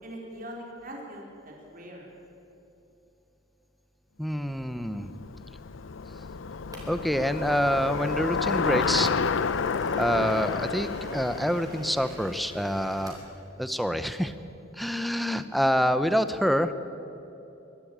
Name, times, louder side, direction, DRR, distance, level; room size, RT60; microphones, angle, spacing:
voice 1, 0.0-2.1, equal, 45° right, -1 dB, 4.3 m, -42 dB
voice 2, 4.2-5.1 6.9-9.1 10.0-13.2 13.6-14.3 14.7-16.7, equal, ahead, 11 dB, 0.7 m, -26 dB
Bicycle, 4.7-13.0, left 5 dB, 80° left, 0.6 m, -30 dB
sound 1, 6.7-13.3, right 2 dB, 20° right, 4.1 m, -48 dB
23.0 x 13.0 x 8.7 m, 2.9 s
head